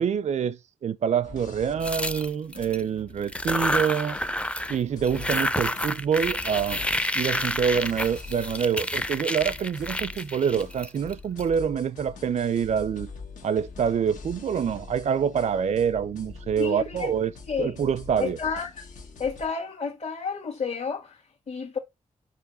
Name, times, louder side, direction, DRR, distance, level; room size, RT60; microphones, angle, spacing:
voice 1, 0.0-4.2 4.7-6.8 7.1-13.1 13.4-17.3 17.6-18.4, right 7 dB, 60° right, 0.4 m, -26 dB
sound 1, 1.2-19.5, left 4 dB, 90° left, 1.2 m, -44 dB
sound 2, 1.8-2.8 3.2-4.8 5.0-11.4, left 1 dB, 10° left, 0.4 m, -29 dB
voice 2, 16.6-17.1 17.5-17.7 18.2-18.8 19.2-21.8, left 5 dB, 60° left, 1.6 m, -31 dB
5.2 x 4.9 x 3.9 m
cardioid pair, 65°, 13 cm